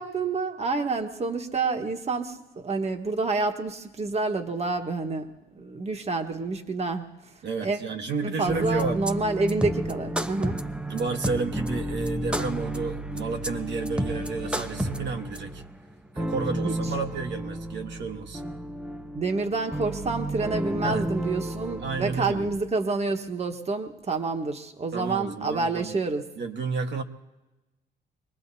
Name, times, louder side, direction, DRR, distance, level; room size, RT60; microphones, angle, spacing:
voice 1, 0.0-5.3 5.5-7.3 7.6-7.8 8.2-10.6 16.6-16.9 19.1-26.2, right 3 dB, 30° right, 5 dB, 1.3 m, -28 dB
voice 2, 7.4-9.0 10.9-15.6 16.1-18.4 20.8-21.0 21.8-22.5 24.9-26.0 26.4-27.0, right 4 dB, 65° right, 3 dB, 1.4 m, -31 dB
sound 1, 8.5-22.6, right 1 dB, 5° right, 0.7 m, -31 dB
25.0 x 20.0 x 2.7 m, 1.1 s
cardioid pair, 90°, 20 cm